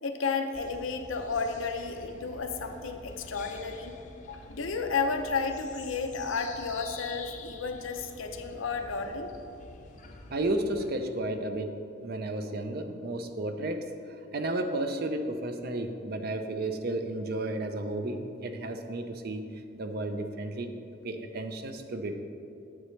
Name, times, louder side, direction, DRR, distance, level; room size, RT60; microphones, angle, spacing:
voice 1, 0.0-3.9 4.3-9.3, left 4 dB, 85° left, 5 dB, 0.7 m, -32 dB
sound 1, 0.5-10.9, left 3 dB, 40° left, 0.6 m, -47 dB
voice 2, 10.3-11.8 12.0-19.4 19.8-20.7 21.0-22.2, right 1 dB, 50° right, 7 dB, 0.6 m, -33 dB
9.3 x 7.7 x 3.2 m, 2.6 s
head